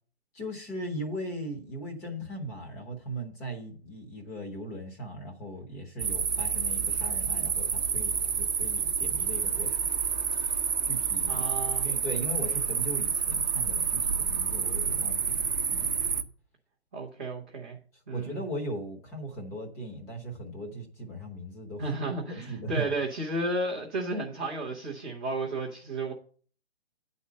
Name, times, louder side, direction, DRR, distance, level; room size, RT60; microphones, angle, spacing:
voice 1, 0.3-9.8 10.4-10.5 10.8-11.5 11.8-15.9 18.1-21.9 22.3-22.9, right 1 dB, 10° left, 0.9 m, -38 dB
sound 1, 6.0-16.2, right 6 dB, 45° right, 0.7 m, -29 dB
voice 2, 11.3-11.9 16.9-17.8 18.1-18.4 21.8-26.1, right 2 dB, 10° right, 0.4 m, -33 dB
9.5 x 4.2 x 6.5 m
figure-of-eight pair, 135°, 32 cm